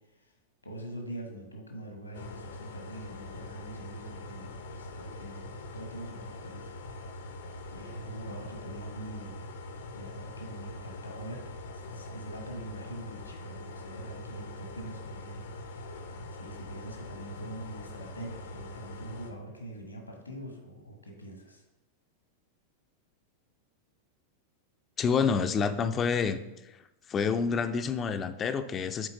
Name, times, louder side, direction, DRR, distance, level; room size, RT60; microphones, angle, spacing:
voice 1, 0.6-6.8 7.7-9.3 9.9-11.4 11.7-15.4 16.3-21.6, right 1 dB, 85° left, 2 dB, 1.3 m, -44 dB
sound 1, 2.1-19.3, left 2 dB, 65° left, 0.6 m, -43 dB
voice 2, 25.0-26.4 26.7-26.8 27.1-29.1, left 6 dB, 25° left, 9 dB, 0.4 m, -28 dB
6.6 x 4.4 x 3.7 m, 0.99 s
figure-of-eight pair, 90°, 0 cm